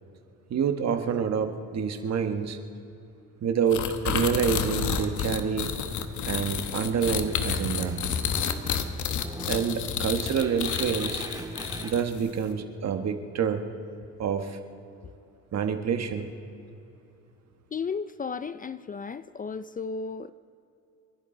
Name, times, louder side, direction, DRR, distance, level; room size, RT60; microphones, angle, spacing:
voice 1, 0.5-2.6 3.4-5.7 6.3-8.0 9.5-11.3 11.8-13.6 14.2-14.6 15.5-16.3, right 7 dB, 60° right, 1.4 m, -27 dB
sound 1, 3.7-12.2, left 8 dB, 75° left, 1.2 m, -30 dB
sound 2, 6.8-11.9, right 2 dB, 15° right, 1.9 m, -41 dB
voice 2, 17.7-20.3, left 5 dB, 30° left, 0.4 m, -34 dB
29.5 x 11.5 x 3.9 m
cardioid pair, 90°, 30 cm